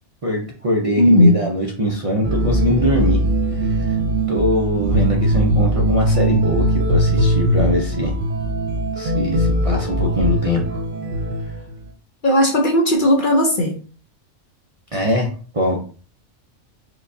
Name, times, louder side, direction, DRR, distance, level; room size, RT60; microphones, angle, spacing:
voice 1, 0.2-3.2 3.5-4.0 4.3-8.2 9.0-10.8 11.4-11.5 14.9-15.8, equal, 40° right, -2 dB, 0.5 m, -22 dB
voice 2, 1.0-1.3 12.2-13.7, left 1 dB, 50° left, 1 dB, 0.7 m, -15 dB
sound 1, 2.2-11.8, equal, 75° right, 1.0 m, -20 dB
4.6 x 2.3 x 2.6 m, 0.41 s
omnidirectional pair, 1.3 m